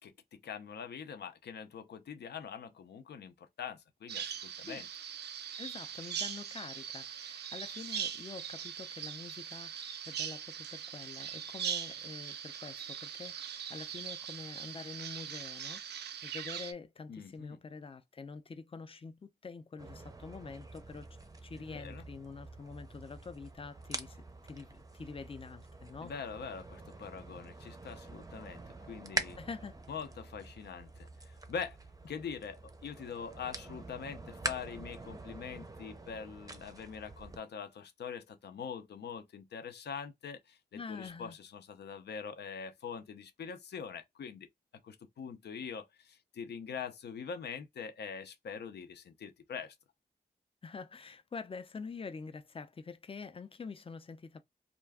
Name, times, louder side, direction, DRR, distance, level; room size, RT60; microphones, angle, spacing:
voice 1, 0.0-4.9 17.1-17.6 21.6-22.1 26.0-29.4 29.9-31.8 32.1-44.5 44.8-49.7, left 6 dB, 80° left, 0.6 m, -43 dB
Bird vocalization bird call bird song, 4.1-16.7, right 8 dB, 80° right, 0.4 m, -41 dB
voice 2, 5.6-24.2 24.4-26.1 29.4-29.8 40.7-41.4 50.6-54.4, left 4 dB, 35° left, 0.5 m, -46 dB
sound 1, 19.8-37.4, right 3 dB, 20° right, 0.5 m, -45 dB
2.4 x 2.2 x 3.4 m
cardioid pair, 65°, 17 cm